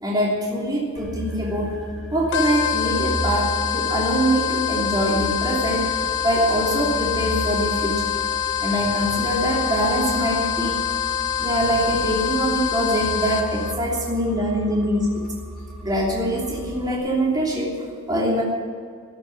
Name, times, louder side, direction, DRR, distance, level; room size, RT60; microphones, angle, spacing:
voice 1, 0.0-1.8 2.1-8.1 8.6-10.8 11.4-15.2 15.8-18.4, right 1 dB, 20° right, -4 dB, 3.1 m, -23 dB
sound 1, 1.0-17.0, equal, ahead, 2.8 m, -35 dB
sound 2, 2.3-13.7, left 9 dB, 55° left, 1.3 m, -25 dB
14.0 x 9.8 x 10.0 m, 2.1 s
head